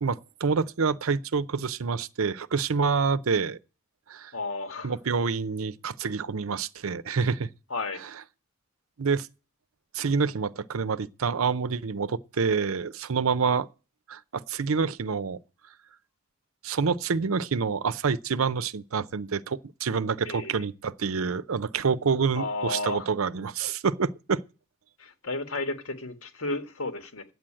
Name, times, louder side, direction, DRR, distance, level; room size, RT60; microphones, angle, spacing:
voice 1, 0.0-3.6 4.1-4.3 4.8-7.5 9.0-9.3 9.9-13.7 14.1-15.4 16.6-24.4, right 5 dB, 80° right, 0.6 m, -27 dB
voice 2, 4.3-4.9 7.7-8.0 20.3-20.6 22.4-23.1 25.0-27.2, left 2 dB, 75° left, 1.8 m, -33 dB
9.3 x 7.7 x 8.7 m
head